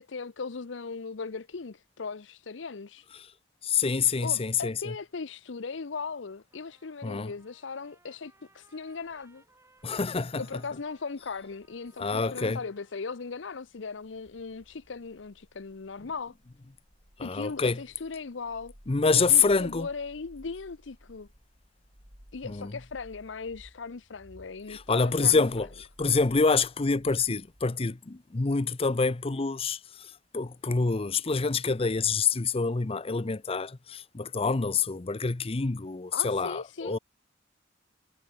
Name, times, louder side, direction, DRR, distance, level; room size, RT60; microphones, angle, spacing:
voice 1, 0.0-3.1 4.2-9.4 10.4-16.3 17.2-18.7 19.1-21.3 22.3-25.7 36.1-37.0, left 4 dB, 75° left, 0.7 m, -38 dB
voice 2, 3.6-4.9 7.0-7.3 9.8-10.4 12.0-12.6 17.2-17.8 18.9-19.9 22.4-22.7 24.7-25.7 26.0-37.0, left 4 dB, 30° left, 0.6 m, -27 dB
Trumpet, 6.5-13.6, right 2 dB, 15° right, 7.4 m, -64 dB
sound 1, 9.8-12.4 13.6-27.6, equal, 40° right, 6.9 m, -57 dB
head